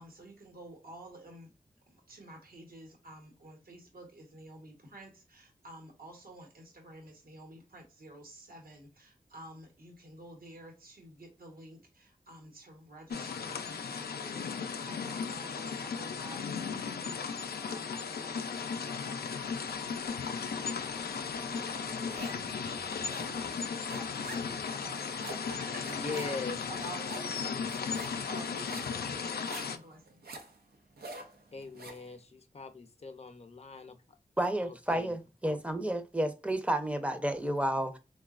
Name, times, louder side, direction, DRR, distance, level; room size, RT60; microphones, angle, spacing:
voice 1, 0.0-1.5 2.1-26.4 26.7-27.4 28.1-30.2, right 1 dB, 70° right, 1.0 m, -51 dB
sound 1, 13.1-29.8, left 6 dB, 85° left, 0.4 m, -36 dB
sound 2, 19.5-24.7, right 1 dB, 50° right, 1.2 m, -55 dB
sound 3, 21.6-22.5 22.8-32.1, right 2 dB, 90° right, 0.6 m, -47 dB
voice 2, 25.8-26.6 27.5-27.6 31.5-34.0 34.6-35.2, left 3 dB, 40° left, 0.6 m, -41 dB
voice 3, 34.4-38.0, right 1 dB, 10° right, 0.6 m, -31 dB
3.8 x 2.3 x 2.4 m
cardioid pair, 50°, 16 cm